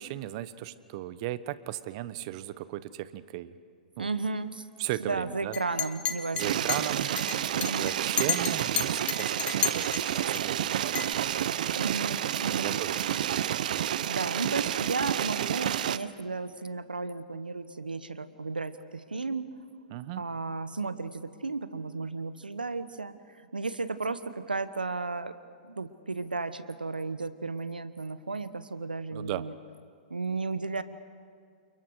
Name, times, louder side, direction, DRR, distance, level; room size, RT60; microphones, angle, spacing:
voice 1, 0.0-3.5 4.0-4.1 4.8-5.5 6.3-7.1 7.8-11.2 12.6-13.4 19.9-20.2 29.1-29.5, right 14 dB, 45° right, 15 dB, 1.1 m, -36 dB
voice 2, 4.0-4.6 5.0-6.9 7.5-7.9 11.7-12.7 14.1-19.5 20.2-23.2 23.5-25.3 25.6-29.5 30.1-30.8, right 3 dB, 90° right, 13 dB, 1.2 m, -34 dB
Chink clink, 5.5-10.4 11.0-11.1, left 9 dB, 25° left, 1.6 m, -32 dB
sound 1, 6.4-16.0, right 10 dB, 60° right, 0.8 m, -30 dB
29.0 x 29.0 x 4.9 m, 2.2 s
hypercardioid pair, 115°, 5 cm